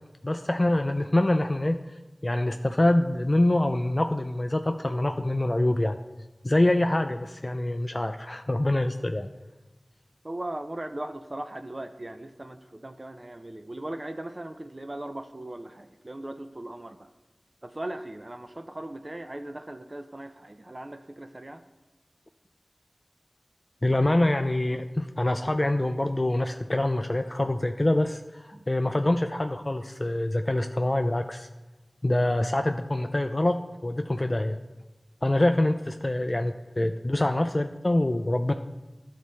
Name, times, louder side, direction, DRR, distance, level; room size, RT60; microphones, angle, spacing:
voice 1, 0.2-1.8 2.2-6.0 6.4-9.3 23.8-31.5 32.0-34.6 35.2-38.5, left 1 dB, 40° left, 6 dB, 0.3 m, -25 dB
voice 2, 10.2-17.1 17.6-21.6 28.5-28.7, right 1 dB, 40° right, 7 dB, 0.4 m, -38 dB
12.0 x 4.1 x 3.2 m, 1.1 s
wide cardioid pair, 45°, 0 cm